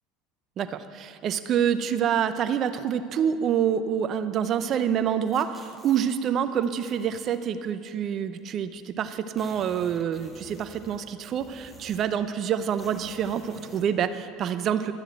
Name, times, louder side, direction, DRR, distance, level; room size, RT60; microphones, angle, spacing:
voice 1, 0.6-14.9, right 8 dB, 45° right, 11 dB, 0.7 m, -27 dB
sound 1, 5.3-6.0 6.6-7.4 8.4-8.5 8.7-8.8 9.1-12.2 12.7-13.9, equal, ahead, 1.7 m, -50 dB
12.0 x 7.2 x 7.8 m, 2.5 s
hypercardioid pair, 85°, 0 cm